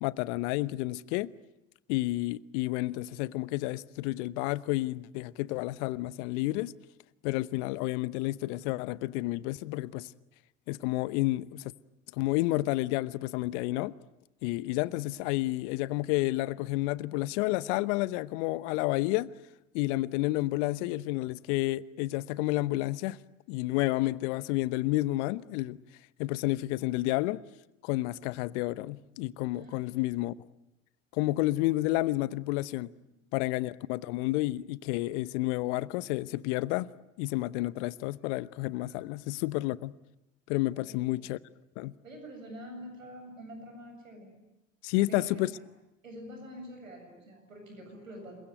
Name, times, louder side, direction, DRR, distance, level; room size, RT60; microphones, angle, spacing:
voice 1, 0.0-1.3 1.9-6.7 7.2-10.1 10.7-11.7 12.2-14.0 14.4-19.3 19.7-23.2 23.5-25.8 26.2-27.4 27.8-30.3 31.1-32.9 33.3-36.9 37.2-39.9 40.5-41.4 41.8-41.9 44.8-45.5, left 18 dB, 65° left, 1.0 m, -30 dB
voice 2, 40.7-41.3 42.0-44.3 45.0-45.4 46.0-48.4, equal, 90° right, 7.8 m, -46 dB
28.0 x 23.0 x 9.2 m
hypercardioid pair, 65°, 39 cm